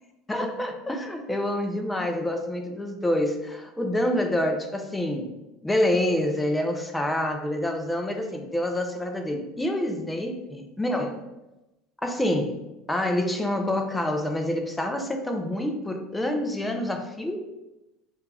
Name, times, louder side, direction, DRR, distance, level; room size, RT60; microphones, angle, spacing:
voice 1, 0.3-5.3 5.6-11.2 12.0-12.6 12.9-17.5, left 1 dB, 10° left, 4 dB, 0.4 m, -27 dB
2.4 x 2.2 x 3.2 m, 0.99 s
figure-of-eight pair, 70°, 0 cm